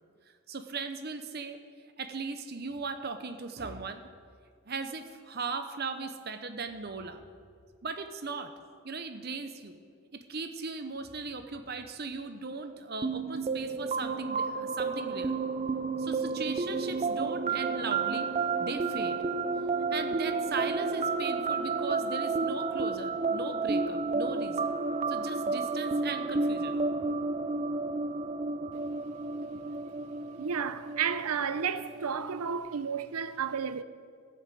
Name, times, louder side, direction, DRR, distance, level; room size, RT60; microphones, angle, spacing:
voice 1, 0.5-1.6 2.0-4.1 4.7-7.2 7.8-8.5 8.8-9.8 10.1-15.3 16.0-18.3 18.6-19.3 19.5-24.7 25.1-26.8, right 4 dB, 45° right, 0.9 m, -38 dB
sound 1, 13.0-32.5, right 4 dB, 30° right, 0.4 m, -31 dB
voice 2, 30.4-33.8, right 7 dB, 85° right, 0.6 m, -32 dB
14.5 x 8.4 x 7.6 m
head